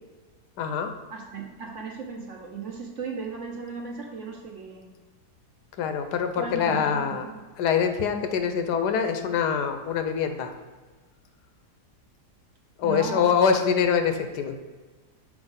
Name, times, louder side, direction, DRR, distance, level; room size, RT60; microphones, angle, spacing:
voice 1, 0.6-0.9 5.8-7.3 7.6-10.5 12.8-14.6, left 7 dB, 80° left, 7 dB, 1.2 m, -24 dB
voice 2, 1.1-5.0 6.4-7.4 12.8-13.3, right 5 dB, 55° right, 1 dB, 1.0 m, -36 dB
6.2 x 4.7 x 3.7 m, 1.4 s
omnidirectional pair, 1.7 m